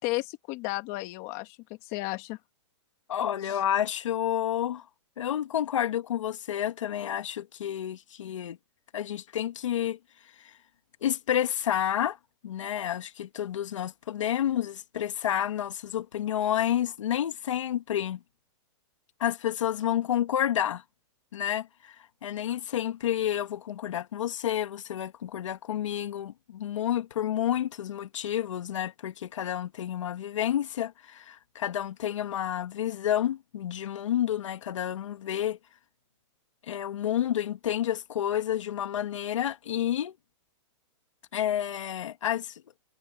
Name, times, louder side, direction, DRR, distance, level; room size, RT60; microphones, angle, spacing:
voice 1, 0.0-1.6 1.8-2.4 3.5-3.6, left 21 dB, 25° left, 2.5 m, -33 dB
voice 2, 3.1-4.8 5.2-8.6 8.9-10.0 10.4-10.5 11.0-12.2 12.4-18.2 19.2-20.8 21.3-35.6 36.7-40.1 41.3-42.6, left 11 dB, 75° left, 1.6 m, -30 dB
supercardioid pair, 175°, 16 cm